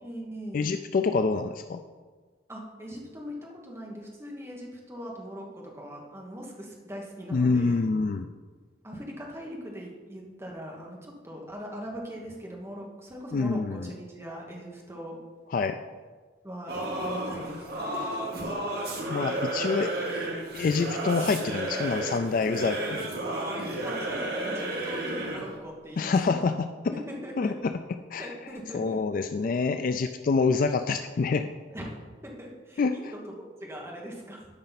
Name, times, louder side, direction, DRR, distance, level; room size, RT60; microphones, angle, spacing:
voice 1, 0.0-0.7 2.5-7.9 8.8-15.2 16.4-18.2 23.8-26.4 26.9-27.5 28.2-29.0 31.7-31.9 32.2-34.5, equal, 15° right, -2 dB, 1.3 m, -41 dB
voice 2, 0.5-1.8 7.3-8.3 13.3-13.9 15.5-15.8 19.1-19.9 20.5-23.1 26.0-26.5 26.8-26.9 27.4-27.7 28.1-28.3 28.7-31.5 32.8-33.1, left 4 dB, 45° left, 8 dB, 0.3 m, -26 dB
Singing / Musical instrument, 16.7-25.5, right 1 dB, 55° right, 1.5 m, -32 dB
12.5 x 5.3 x 4.1 m, 1.4 s
head